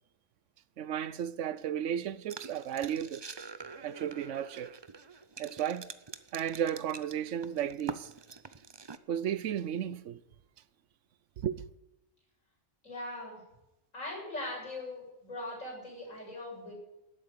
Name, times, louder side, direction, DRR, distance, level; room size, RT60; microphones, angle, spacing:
voice 1, 0.8-3.2 3.8-4.8 5.4-5.9 6.3-8.1 9.1-10.2 11.4-11.6, right 9 dB, 70° right, 1.0 m, -34 dB
sound 1, 2.3-9.0, right 4 dB, 35° right, 0.4 m, -46 dB
voice 2, 12.8-13.4 13.9-16.7, left 2 dB, 85° left, 7.7 m, -40 dB
12.5 x 8.5 x 9.5 m
omnidirectional pair, 1.3 m